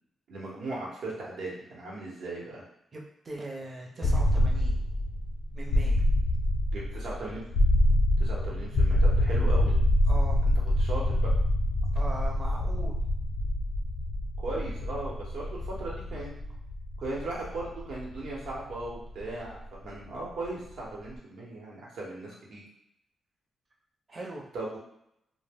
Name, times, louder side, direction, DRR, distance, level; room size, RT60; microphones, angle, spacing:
voice 1, 0.3-2.6 6.7-7.4 8.2-9.8 10.8-11.3 14.4-16.3 17.0-22.6 24.5-24.8, right 2 dB, 85° right, -4 dB, 0.9 m, -37 dB
voice 2, 2.9-4.8 5.5-6.0 10.1-10.4 11.9-13.0 24.1-24.5, right 2 dB, 35° right, 0 dB, 0.6 m, -40 dB
sound 1, 4.0-19.9, left 1 dB, 85° left, 0.4 m, -26 dB
sound 2, 4.0-6.7, left 1 dB, 10° left, 0.3 m, -35 dB
2.2 x 2.0 x 3.4 m, 0.77 s
cardioid pair, 110°, 0 cm